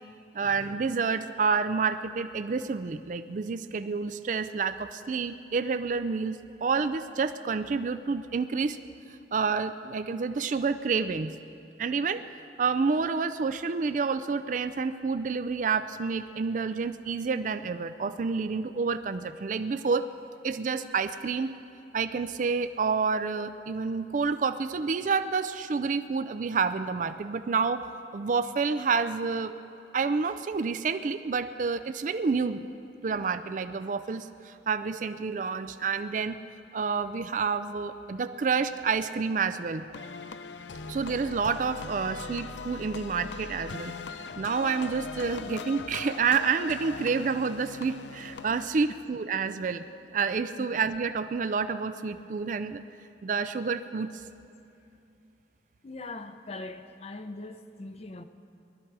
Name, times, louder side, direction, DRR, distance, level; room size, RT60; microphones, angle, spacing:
voice 1, 0.3-8.8 9.3-11.3 11.8-20.1 20.4-21.5 21.9-27.9 28.1-29.5 29.9-32.7 33.0-36.4 36.7-39.9 40.9-44.0 44.4-49.8 50.1-52.8 53.2-54.1, right 5 dB, 45° right, 0.4 m, -29 dB
sound 1, 39.9-48.7, left 4 dB, 80° left, 0.5 m, -40 dB
voice 2, 55.8-58.2, left 2 dB, 35° left, 0.6 m, -41 dB
20.0 x 12.5 x 4.7 m
head